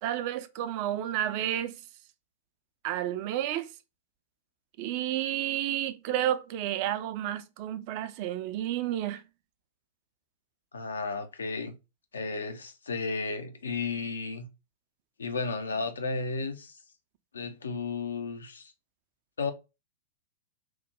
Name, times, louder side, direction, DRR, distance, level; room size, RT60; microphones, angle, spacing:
voice 1, 0.0-1.8 2.8-3.7 4.8-9.2, right 12 dB, 40° right, 0.3 m, -31 dB
voice 2, 10.7-11.8 12.1-14.5 15.2-16.8 17.3-18.7 19.4-19.5, left 4 dB, 70° left, 0.5 m, -33 dB
3.1 x 2.1 x 3.3 m
figure-of-eight pair, 100°, 0 cm